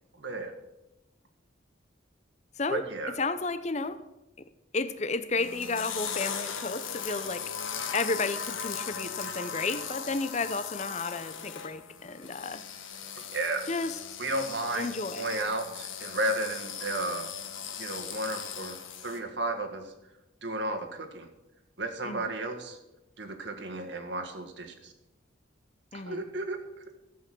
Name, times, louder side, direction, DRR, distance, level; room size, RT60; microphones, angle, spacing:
voice 1, 0.2-0.5 2.7-3.1 13.1-13.7 14.2-17.3 17.8-18.8 19.0-19.9 20.4-21.3 21.8-22.8 23.2-24.9 25.9-26.6, right 2 dB, 65° right, 4 dB, 1.7 m, -33 dB
voice 2, 3.2-4.0 4.4-4.5 4.7-7.4 7.9-12.6 13.7-14.0 14.7-15.3 22.0-22.3 25.9-26.2, left 3 dB, 35° left, 12 dB, 0.7 m, -32 dB
sound 1, 5.4-19.2, left 7 dB, 85° left, 1.4 m, -38 dB
13.5 x 8.5 x 6.2 m, 0.95 s
head